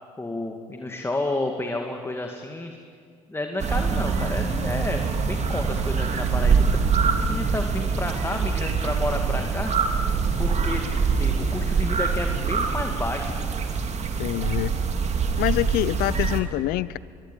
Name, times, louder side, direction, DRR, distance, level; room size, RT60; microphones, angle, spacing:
voice 1, 0.2-2.8 3.3-6.6 7.3-10.8 11.2-13.5, left 2 dB, 15° left, 3 dB, 2.3 m, -31 dB
sound 1, 3.6-16.4, right 5 dB, 40° right, 2.8 m, -24 dB
sound 2, 4.2-12.1 12.5-12.6, left 8 dB, 90° left, 3.3 m, -46 dB
voice 2, 14.2-14.7 15.4-17.0, left 17 dB, 65° left, 20 dB, 0.7 m, -26 dB
24.5 x 22.5 x 9.2 m, 2.2 s
hypercardioid pair, 60°, 17 cm